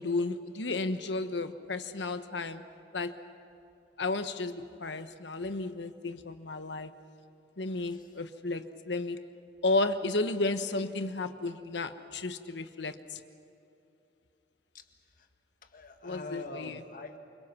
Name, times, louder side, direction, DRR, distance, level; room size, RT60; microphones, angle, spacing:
voice 1, 0.0-2.6 2.9-3.1 4.0-6.9 7.6-9.2 9.6-13.2 16.0-16.8, left 2 dB, 85° left, 9 dB, 1.2 m, -33 dB
voice 2, 15.6-17.2, left 2 dB, 50° left, 5 dB, 1.7 m, -44 dB
28.5 x 25.0 x 6.0 m, 2.7 s
head